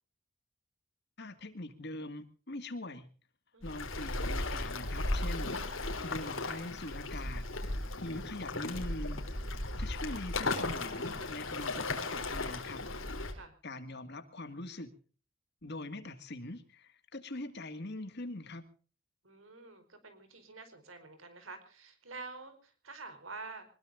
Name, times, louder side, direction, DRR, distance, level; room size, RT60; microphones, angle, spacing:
voice 1, 1.2-3.1 3.6-12.9 13.6-14.9 15.6-18.6, left 2 dB, 55° left, 10 dB, 2.2 m, -43 dB
voice 2, 3.5-3.9 13.3-13.5 19.2-23.7, right 3 dB, 85° right, 9 dB, 4.7 m, -48 dB
Waves surf, 3.6-13.3, left 2 dB, 75° left, 3.7 m, -36 dB
25.0 x 20.5 x 2.7 m, 0.40 s
head